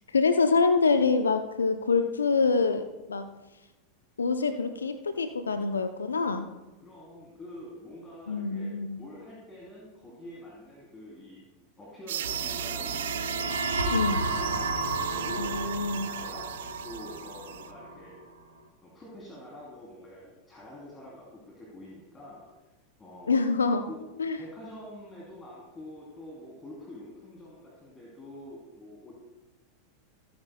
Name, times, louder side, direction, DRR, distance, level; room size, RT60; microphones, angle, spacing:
voice 1, 0.1-3.3 4.2-6.5 8.3-9.0 13.9-14.2 15.3-16.1 23.3-23.9 24.2-24.4, left 4 dB, 80° left, 9 dB, 0.5 m, -26 dB
voice 2, 6.8-11.4 11.8-16.5 16.8-18.2 18.8-22.5 23.0-23.4 23.9-24.0 24.4-29.2, left 1 dB, 20° left, -4 dB, 3.0 m, -46 dB
sound 1, 12.1-17.7, right 11 dB, 65° right, 0.6 m, -38 dB
sound 2, 12.2-18.1, right 2 dB, 85° right, 1.7 m, -32 dB
17.5 x 9.5 x 2.2 m, 1.1 s
figure-of-eight pair, 90°, 0 cm